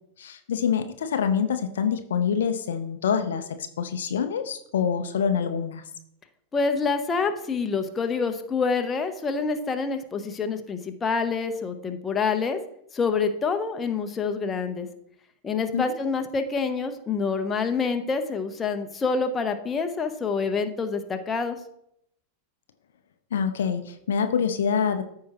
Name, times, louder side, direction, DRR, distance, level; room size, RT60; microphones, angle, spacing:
voice 1, 0.2-5.8 15.7-16.0 23.3-25.0, left 7 dB, 60° left, 8 dB, 0.6 m, -26 dB
voice 2, 6.5-12.6 12.9-14.9 15.4-21.6, left 5 dB, 20° left, 6 dB, 0.8 m, -27 dB
14.0 x 4.7 x 3.0 m, 0.74 s
figure-of-eight pair, 90°, 0 cm